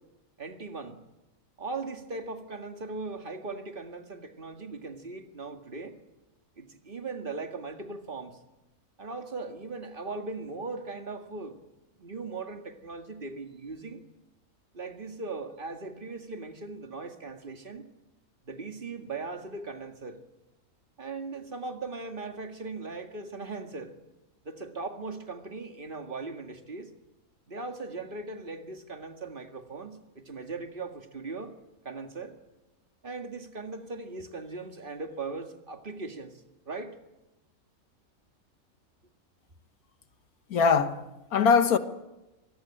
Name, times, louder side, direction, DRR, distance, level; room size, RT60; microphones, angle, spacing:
voice 1, 0.4-1.0 1.6-6.0 6.6-8.4 9.0-11.6 12.0-14.0 14.7-17.9 18.4-20.2 21.0-23.9 24.4-26.9 27.5-31.5 31.8-32.4 33.0-37.0, right 3 dB, 35° right, 2.1 m, -39 dB
voice 2, 40.5-41.8, left 6 dB, 85° left, 1.8 m, -22 dB
26.0 x 19.0 x 8.8 m
omnidirectional pair, 1.5 m